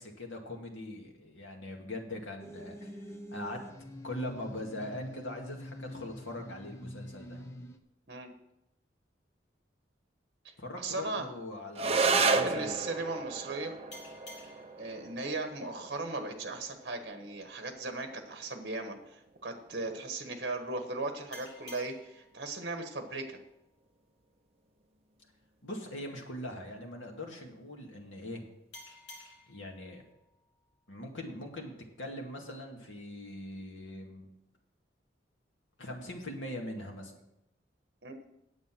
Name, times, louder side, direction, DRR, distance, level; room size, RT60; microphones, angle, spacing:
voice 1, 0.0-3.0 3.3-3.6 4.0-7.4 10.6-12.8 25.6-28.4 29.5-30.0 30.9-31.7 32.0-34.3 35.8-37.2, left 1 dB, 90° left, 1 dB, 2.1 m, -41 dB
sound 1, 2.4-7.8, equal, 15° left, 0.7 m, -46 dB
voice 2, 10.8-11.3 11.9-13.7 14.8-23.4 38.0-38.2, right 2 dB, 55° right, 5 dB, 1.2 m, -37 dB
sound 2, 11.7-20.7, right 4 dB, 30° right, 0.6 m, -34 dB
sound 3, 13.9-17.1 21.3-24.5 28.7-31.7, left 2 dB, 60° left, 2.8 m, -55 dB
9.7 x 8.0 x 6.1 m, 0.86 s
head